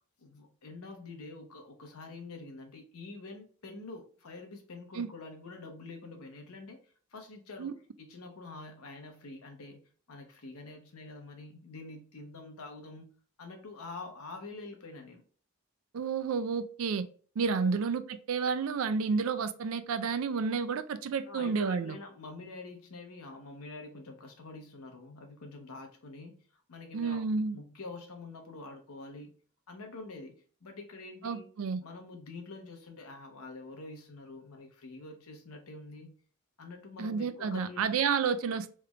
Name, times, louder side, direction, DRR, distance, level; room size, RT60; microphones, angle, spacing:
voice 1, 0.2-9.8 10.1-13.1 13.4-15.2 17.6-17.8 21.3-27.2 27.5-29.3 29.7-30.3 30.6-31.5 31.8-36.1 36.6-37.8, left 3 dB, 90° left, 0.8 m, -46 dB
voice 2, 15.9-17.0 17.4-18.0 18.3-21.9 26.9-27.6 31.2-31.8 37.0-38.7, right 5 dB, 65° right, 0.4 m, -30 dB
3.3 x 3.1 x 2.3 m
head